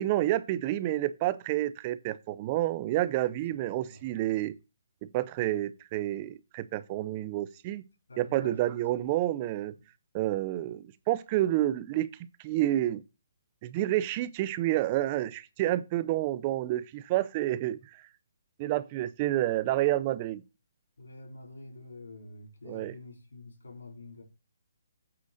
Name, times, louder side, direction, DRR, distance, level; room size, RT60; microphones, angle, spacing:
voice 1, 0.0-4.5 5.1-7.8 8.2-9.7 10.1-12.1 12.4-13.0 13.6-17.8 18.6-20.4 22.6-23.0, right 14 dB, 30° right, 0.5 m, -29 dB
voice 2, 8.1-8.6 9.0-9.1 21.0-24.2, left 2 dB, 90° left, 4.4 m, -47 dB
8.6 x 3.9 x 6.3 m
hypercardioid pair, 155°, 0 cm